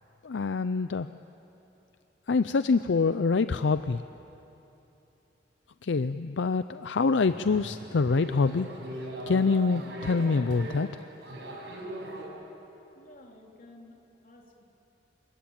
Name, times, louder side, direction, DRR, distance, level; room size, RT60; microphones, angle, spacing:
voice 1, 0.2-1.1 2.3-4.0 5.8-8.7 9.3-10.9, left 4 dB, 75° left, 12 dB, 0.5 m, -25 dB
sound 1, 7.2-12.2, right 1 dB, 70° right, 5.6 m, -40 dB
voice 2, 12.9-14.0 14.2-14.6, left 2 dB, 50° left, 0 dB, 3.3 m, -52 dB
27.5 x 22.5 x 8.8 m, 3.0 s
head